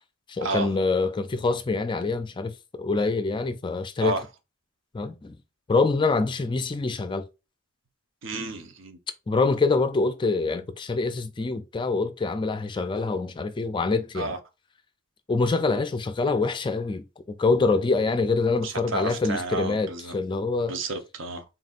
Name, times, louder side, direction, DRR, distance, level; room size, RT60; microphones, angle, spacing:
voice 1, 0.3-4.2 4.9-5.4 5.7-7.3 9.3-14.4 15.3-17.0 17.4-20.8, left 3 dB, 25° left, 0.3 m, -25 dB
voice 2, 8.2-9.0 14.2-14.4 18.6-20.1 20.7-21.4, right 3 dB, 65° right, 0.8 m, -31 dB
4.1 x 4.1 x 2.5 m
head